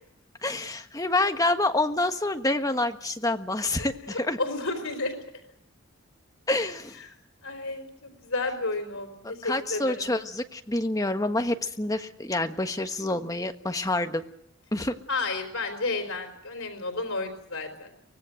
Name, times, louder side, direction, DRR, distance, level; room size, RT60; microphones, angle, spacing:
voice 1, 0.4-4.4 6.5-6.9 9.2-14.2 14.7-15.0, left 2 dB, 15° left, 7 dB, 1.4 m, -27 dB
voice 2, 4.1-5.2 7.4-10.0 15.1-17.9, left 3 dB, 90° left, 5 dB, 4.0 m, -31 dB
24.5 x 18.5 x 7.8 m, 0.72 s
head